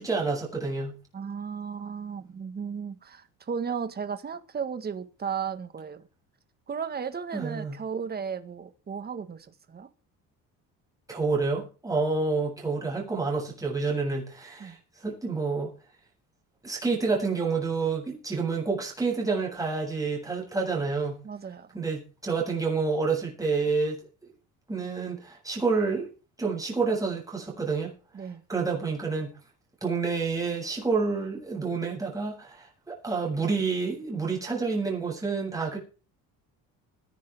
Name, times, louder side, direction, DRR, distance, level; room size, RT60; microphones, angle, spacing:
voice 1, 0.0-1.0 7.3-7.8 11.1-15.7 16.6-21.2 21.7-24.0 24.7-26.1 26.4-27.9 28.5-29.4 29.8-35.8, right 4 dB, 10° right, 8.0 m, -28 dB
voice 2, 1.1-6.1 6.7-9.9 14.6-14.8 21.2-21.7 28.1-28.4, right 6 dB, 30° right, 1.7 m, -35 dB
21.5 x 11.0 x 3.7 m
cardioid pair, 140°, 34 cm